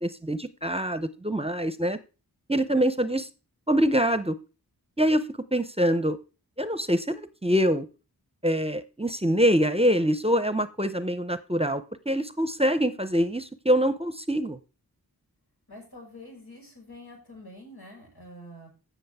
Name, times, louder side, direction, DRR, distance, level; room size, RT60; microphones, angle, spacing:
voice 1, 0.0-2.0 2.5-3.3 3.7-4.4 5.0-6.2 6.6-7.9 8.4-14.6, equal, 15° right, 13 dB, 0.7 m, -25 dB
voice 2, 15.7-18.7, left 1 dB, 90° left, -2 dB, 6.3 m, -46 dB
15.0 x 6.2 x 3.6 m, 0.33 s
wide cardioid pair, 50°, 38 cm